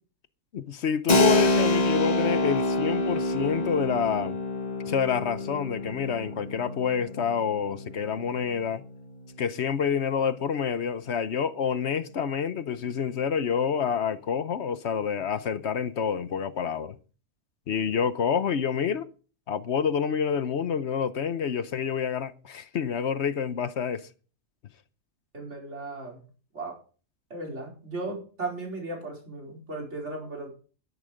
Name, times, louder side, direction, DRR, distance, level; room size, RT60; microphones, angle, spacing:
voice 1, 0.5-4.4 4.9-8.8 9.4-17.0 17.7-19.1 19.5-24.1, left 7 dB, 60° left, 1.1 m, -28 dB
Keyboard (musical), 1.1-9.5, left 2 dB, 35° left, 1.1 m, -27 dB
voice 2, 25.3-26.2 26.5-26.8 27.3-30.5, right 2 dB, 60° right, 5.1 m, -36 dB
12.5 x 11.0 x 5.1 m
omnidirectional pair, 1.3 m